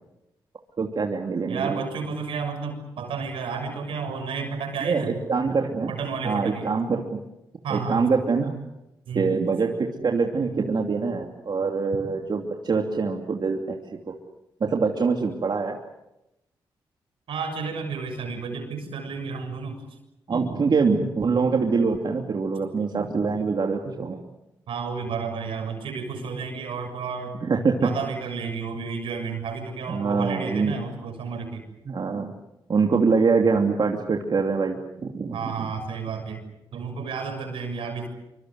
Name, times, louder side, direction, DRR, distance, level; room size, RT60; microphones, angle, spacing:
voice 1, 0.8-1.8 4.8-5.9 6.2-7.2 7.7-8.5 9.1-14.1 14.6-15.8 20.3-24.2 27.4-27.9 29.9-30.7 31.8-32.3 32.7-35.7, right 4 dB, 55° right, 2 dB, 2.9 m, -24 dB
voice 2, 1.5-5.2 5.9-6.7 7.6-8.1 9.1-9.3 17.3-19.8 24.7-27.4 27.8-31.6 35.3-36.4 36.7-38.1, right 5 dB, 85° right, 5 dB, 6.9 m, -31 dB
25.5 x 25.0 x 8.1 m, 0.90 s
supercardioid pair, 55°, 9 cm